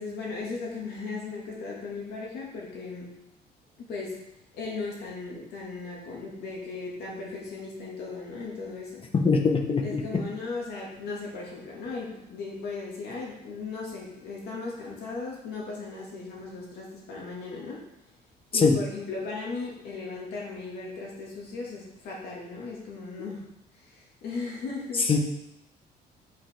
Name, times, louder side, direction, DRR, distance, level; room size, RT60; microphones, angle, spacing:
voice 1, 0.0-3.2 3.8-9.1 9.8-17.9 18.5-25.2, left 4 dB, 75° left, -3 dB, 2.5 m, -37 dB
voice 2, 9.1-10.0 18.5-18.8 25.1-25.2, left 4 dB, 30° left, 4 dB, 1.2 m, -22 dB
8.0 x 5.6 x 3.8 m, 0.85 s
cardioid pair, 110°, 17 cm